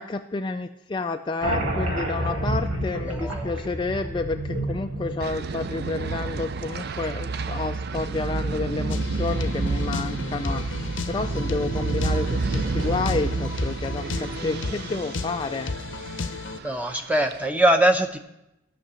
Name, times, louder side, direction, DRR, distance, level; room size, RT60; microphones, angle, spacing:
voice 1, 0.0-15.7, left 3 dB, 25° left, 6 dB, 0.3 m, -30 dB
sound 1, 1.4-6.7, right 1 dB, 90° right, 1.9 m, -30 dB
voice 2, 3.1-3.4 16.6-18.2, right 1 dB, 5° right, 6 dB, 0.8 m, -22 dB
sound 2, 5.2-17.5, right 3 dB, 50° right, 0.4 m, -30 dB
sound 3, 8.9-16.6, left 3 dB, 65° left, 0.7 m, -33 dB
13.0 x 5.9 x 7.5 m, 0.88 s
head